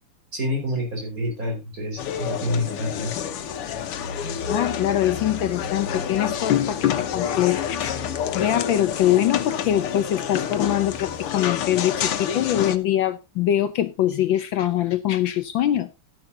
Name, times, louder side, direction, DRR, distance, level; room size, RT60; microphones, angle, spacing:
voice 1, 0.3-3.1, left 1 dB, 40° right, 5.3 m, -27 dB
sound 1, 2.0-12.8, left 8 dB, 85° left, 1.9 m, -28 dB
voice 2, 4.1-15.9, left 12 dB, 70° left, 1.3 m, -23 dB
13.5 x 10.5 x 2.7 m
omnidirectional pair, 2.4 m